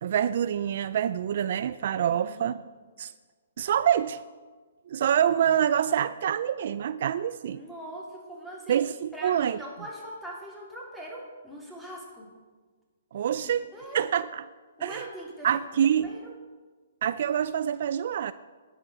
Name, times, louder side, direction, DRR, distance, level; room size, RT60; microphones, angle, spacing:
voice 1, 0.0-2.6 3.0-3.1 3.6-4.2 4.9-7.6 8.7-9.6 13.1-13.7 13.9-14.4 14.8-15.0 15.4-16.1 17.0-18.3, right 9 dB, 55° right, 14 dB, 0.3 m, -26 dB
voice 2, 2.1-2.6 7.5-8.8 9.1-12.3 13.4-14.0 14.8-16.2, right 1 dB, ahead, -4 dB, 2.9 m, -42 dB
10.5 x 8.9 x 6.1 m, 1.4 s
hypercardioid pair, 150°, 0 cm